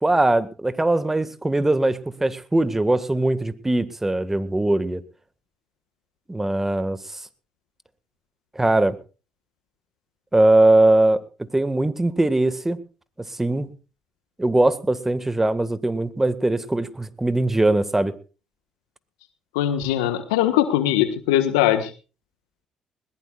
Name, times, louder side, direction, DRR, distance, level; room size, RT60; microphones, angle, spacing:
voice 1, 0.0-5.0 6.3-7.2 8.6-9.0 10.3-11.2 11.5-12.8 13.3-13.7 14.4-18.1, right 2 dB, 15° right, 14 dB, 1.8 m, -20 dB
voice 2, 19.5-21.9, left 12 dB, 85° left, 10 dB, 1.4 m, -21 dB
21.0 x 20.0 x 2.4 m, 0.34 s
hypercardioid pair, 55°, 2 cm